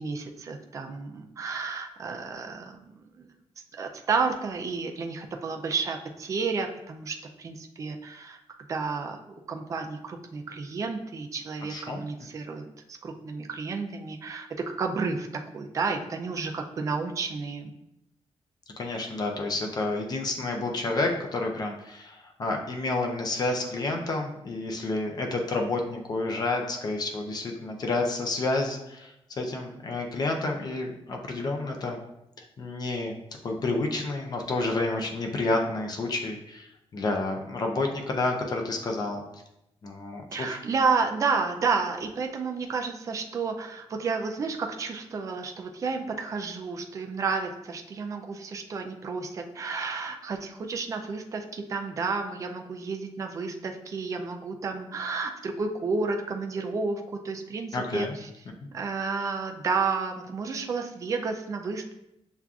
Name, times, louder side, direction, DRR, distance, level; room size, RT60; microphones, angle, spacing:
voice 1, 0.0-3.3 3.8-8.4 8.7-14.5 14.8-15.3 15.5-17.7 40.3-58.3 58.7-61.9, right 4 dB, 30° right, 3 dB, 0.3 m, -31 dB
voice 2, 11.7-12.0 18.8-29.1 29.4-32.0 32.6-33.1 33.4-36.7 36.9-39.2 39.8-40.6 57.7-58.1, left 2 dB, 40° left, 2 dB, 0.5 m, -29 dB
6.9 x 2.4 x 2.3 m, 0.84 s
wide cardioid pair, 175°, 11 cm